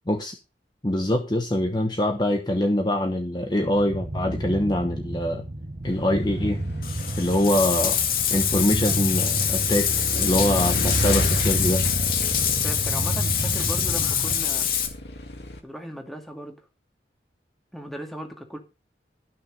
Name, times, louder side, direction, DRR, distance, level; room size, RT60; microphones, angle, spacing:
voice 1, 0.1-0.4 0.8-5.4 5.8-6.6 7.2-8.0 8.3-9.9 10.2-11.9 14.0-14.1, left 1 dB, 25° left, 5 dB, 1.1 m, -24 dB
sound 1, 3.6-14.4, right 1 dB, 40° right, 1.1 m, -31 dB
Motorcycle / Engine, 5.8-15.6, left 1 dB, 70° left, 2.1 m, -32 dB
Bathtub (filling or washing), 6.8-14.9, left 9 dB, 50° left, 2.3 m, -25 dB
voice 2, 12.2-14.7 15.6-16.6 17.7-18.6, equal, ahead, 2 dB, 2.2 m, -37 dB
13.5 x 6.5 x 5.4 m, 0.29 s
head